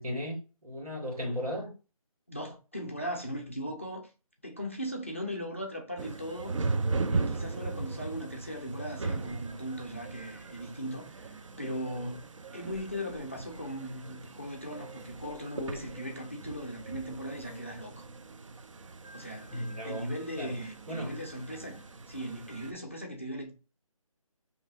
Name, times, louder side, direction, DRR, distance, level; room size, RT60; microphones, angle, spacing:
voice 1, 0.0-1.7 11.9-12.0 19.5-21.2, equal, 85° right, 1.7 m, -36 dB
voice 2, 2.3-4.1 4.4-6.6 7.1-12.2 12.5-18.1 19.1-21.8 22.1-23.5, equal, 20° left, 0.4 m, -38 dB
sound 1, 6.0-22.7, right 3 dB, 60° right, 0.4 m, -38 dB
2.7 x 2.6 x 3.6 m
figure-of-eight pair, 170°, 18 cm